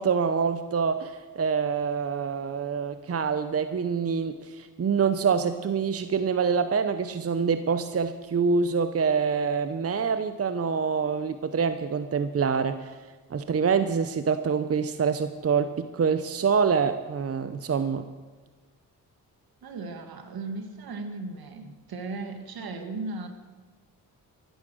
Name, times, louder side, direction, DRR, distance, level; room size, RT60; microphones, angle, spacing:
voice 1, 0.0-12.9 13.3-18.0, right 6 dB, 40° right, 10 dB, 0.8 m, -26 dB
voice 2, 19.6-23.3, right 3 dB, 70° right, 6 dB, 1.9 m, -36 dB
15.5 x 12.0 x 6.3 m, 1.3 s
cardioid pair, 70°, 38 cm